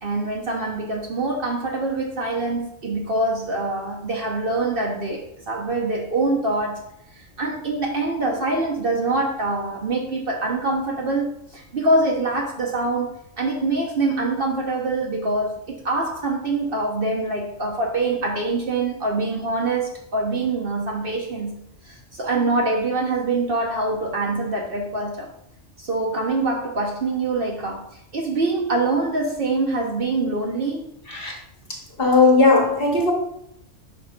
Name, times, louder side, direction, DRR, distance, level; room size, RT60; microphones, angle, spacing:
voice 1, 0.0-25.3 25.8-27.9 28.1-30.8, right 2 dB, 50° right, 0.9 m, -24 dB
voice 2, 31.7-33.1, left 3 dB, 50° left, 1.3 m, -18 dB
5.8 x 3.4 x 4.9 m
omnidirectional pair, 1.3 m